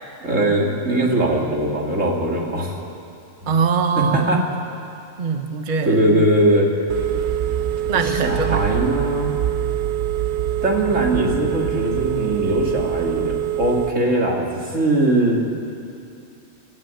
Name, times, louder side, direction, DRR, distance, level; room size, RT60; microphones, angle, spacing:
voice 1, 0.2-2.8 3.4-3.5 4.0-4.4 5.8-6.7 7.9-9.3 10.6-15.4, right 1 dB, 90° right, -1 dB, 3.0 m, -20 dB
voice 2, 3.5-4.4 5.2-6.2 7.9-8.6, right 5 dB, 40° right, 6 dB, 1.1 m, -22 dB
Telephone, 6.9-13.9, right 11 dB, 65° right, 0.9 m, -24 dB
27.5 x 13.0 x 9.1 m, 2.6 s
omnidirectional pair, 1.3 m